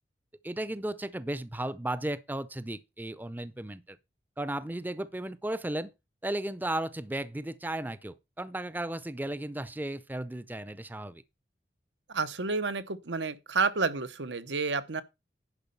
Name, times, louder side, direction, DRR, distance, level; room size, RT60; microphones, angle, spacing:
voice 1, 0.4-4.0 4.4-5.9 6.2-11.2, right 1 dB, 10° right, 0.5 m, -35 dB
voice 2, 12.1-15.0, right 4 dB, 85° right, 1.0 m, -30 dB
11.0 x 5.2 x 5.5 m
head